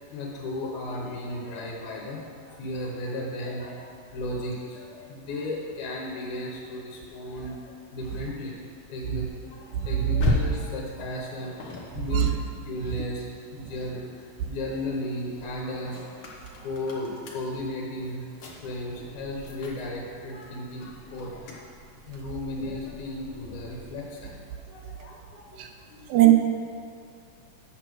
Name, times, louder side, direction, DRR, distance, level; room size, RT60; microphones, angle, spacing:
voice 1, 0.1-7.6 7.9-8.6 8.9-12.4 12.7-18.3 18.6-21.7 22.1-25.6 25.9-26.1, left 1 dB, 90° left, -3 dB, 2.6 m, -35 dB
sound 1, 7.3-13.9 14.3-24.1, left 1 dB, 60° left, 1.1 m, -37 dB
voice 2, 10.0-10.1 12.1-12.3 25.6-25.7 26.1-26.3, right 14 dB, 85° right, 3 dB, 2.0 m, -18 dB
7.6 x 6.1 x 6.2 m, 2.4 s
omnidirectional pair, 3.4 m